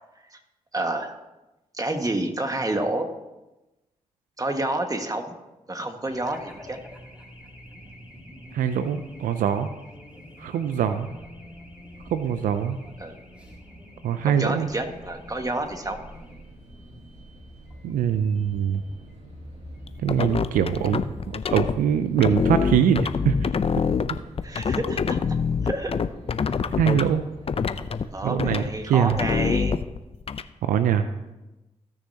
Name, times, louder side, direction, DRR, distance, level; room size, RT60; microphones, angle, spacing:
voice 1, 0.7-1.1 1.7-3.1 4.4-5.3 5.7-6.8 13.0-13.1 14.2-16.0 24.4-25.2 25.6-25.9 28.1-29.8, right 2 dB, 25° right, 5 dB, 1.6 m, -29 dB
Race car auto racing / Alarm, 6.1-23.0, left 1 dB, 10° right, 2.8 m, -48 dB
voice 2, 8.5-9.7 10.4-11.1 12.1-12.8 14.0-14.7 17.8-18.8 20.0-21.0 21.5-23.4 26.8-27.3 28.2-29.2 30.6-31.1, right 8 dB, 85° right, 10 dB, 0.5 m, -23 dB
sound 1, 14.6-29.7, equal, 55° right, 2.6 m, -45 dB
sound 2, 19.9-21.7 22.2-27.1 27.5-28.0 28.4-28.7 29.1-30.4, left 6 dB, 45° left, 0.5 m, -25 dB
17.0 x 6.5 x 2.8 m, 1.0 s
supercardioid pair, 45°, 14 cm